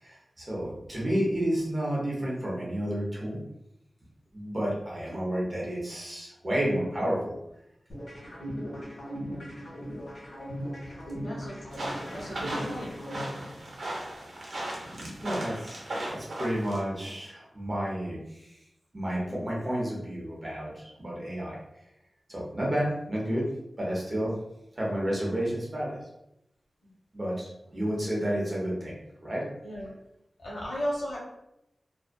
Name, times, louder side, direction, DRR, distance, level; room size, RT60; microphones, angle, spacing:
voice 1, 0.0-3.4 4.3-7.3 14.5-14.6 15.2-18.5 18.9-21.6 22.3-23.5 23.8-24.3 24.8-26.0 27.1-29.5, equal, 30° right, -4 dB, 0.8 m, -31 dB
sound 1, 7.9-13.9, equal, 50° left, 1.1 m, -38 dB
voice 2, 11.2-11.7 12.1-13.0 24.2-24.3 29.6-29.9 30.4-31.2, equal, 85° left, -4 dB, 0.9 m, -35 dB
sound 2, 11.7-16.8, right 1 dB, 80° right, 0.7 m, -37 dB
2.5 x 2.3 x 2.2 m, 0.82 s
wide cardioid pair, 105°, 0 cm